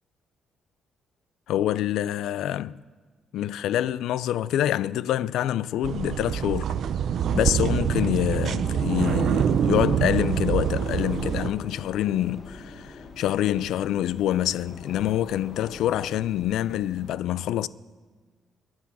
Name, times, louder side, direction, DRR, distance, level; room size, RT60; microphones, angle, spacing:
voice 1, 1.5-2.8 3.3-6.8 7.3-17.7, left 12 dB, 75° left, 0.3 m, -26 dB
sound 1, 5.8-11.5, right 8 dB, 50° right, 0.5 m, -25 dB
sound 2, 9.0-17.1, left 3 dB, 35° left, 1.1 m, -43 dB
15.5 x 9.5 x 6.1 m
cardioid pair, 165°, 0 cm